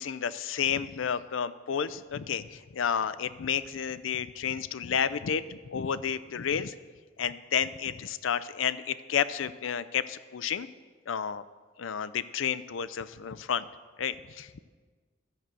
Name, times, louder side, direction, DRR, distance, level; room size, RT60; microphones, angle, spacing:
voice 1, 0.0-6.7 7.2-10.7 11.1-11.4 11.8-13.7 14.0-14.6, left 8 dB, 80° left, 15 dB, 0.5 m, -31 dB
12.5 x 6.6 x 7.6 m, 1.5 s
head